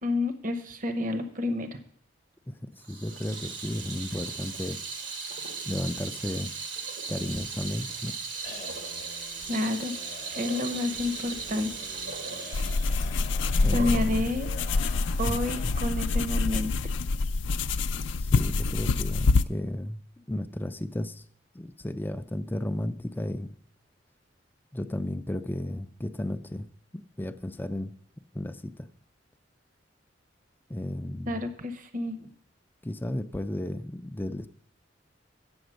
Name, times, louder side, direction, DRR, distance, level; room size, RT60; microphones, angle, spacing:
voice 1, 0.0-1.8 9.5-9.9 10.3-11.7 13.7-14.5 15.2-16.7 31.3-32.3, left 2 dB, 45° right, 8 dB, 0.9 m, -29 dB
voice 2, 2.5-4.8 5.7-6.5 7.1-8.2 13.6-14.3 15.3-15.4 15.6-15.7 18.3-21.2 21.5-23.5 24.7-26.7 26.9-27.9 28.3-28.9 30.7-31.4 32.8-34.5, left 1 dB, 10° left, 11 dB, 0.4 m, -34 dB
Water tap faucet / Sink (filling or washing), 2.8-14.1, right 5 dB, 80° right, 1.4 m, -38 dB
sound 1, 8.0-16.3 16.6-16.7 17.0-17.1 17.4-17.9, left 3 dB, 40° left, 0.9 m, -46 dB
sound 2, 12.5-19.4, left 3 dB, 80° left, 0.4 m, -26 dB
8.1 x 8.0 x 6.3 m, 0.66 s
head